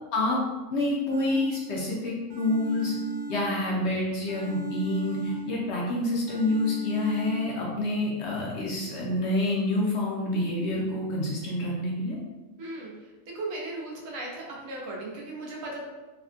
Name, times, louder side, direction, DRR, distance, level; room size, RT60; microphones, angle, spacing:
voice 1, 0.7-2.9 3.3-12.2, left 1 dB, 65° left, -3 dB, 0.8 m, -27 dB
sound 1, 1.1-1.9 2.3-3.9 4.3-5.9 6.3-7.7, left 1 dB, 75° right, 0.4 m, -39 dB
voice 2, 12.6-12.9 13.3-15.8, right 2 dB, 90° right, -2 dB, 1.1 m, -36 dB
3.3 x 2.1 x 2.4 m, 1.2 s
omnidirectional pair, 1.4 m